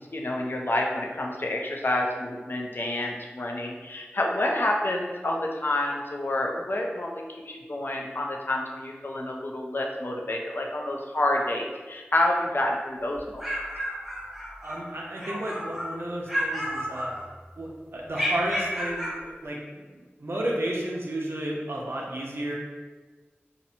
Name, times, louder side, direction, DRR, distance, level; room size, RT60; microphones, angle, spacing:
voice 1, 0.0-13.5, left 1 dB, 55° left, 0 dB, 0.4 m, -28 dB
sound 1, 13.1-14.8 15.1-15.9 16.3-17.5 18.1-19.2, equal, 5° right, 0.7 m, -31 dB
voice 2, 14.6-17.1 17.6-22.5, right 1 dB, 65° right, -3 dB, 0.5 m, -32 dB
2.7 x 2.0 x 2.6 m, 1.3 s
wide cardioid pair, 45°, 4 cm